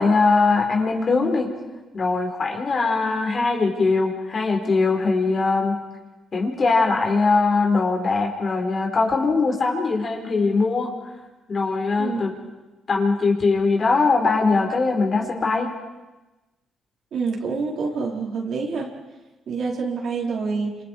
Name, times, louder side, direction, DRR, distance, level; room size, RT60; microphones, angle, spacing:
voice 1, 0.0-1.5 1.9-5.8 6.3-10.9 11.5-12.4 12.9-15.7, left 3 dB, 40° left, 2 dB, 4.8 m, -21 dB
voice 2, 12.0-12.5 17.1-18.9 19.5-20.8, right 4 dB, 65° right, -1 dB, 4.8 m, -27 dB
29.5 x 26.5 x 4.8 m, 1.1 s
cardioid pair, 90°, 0 cm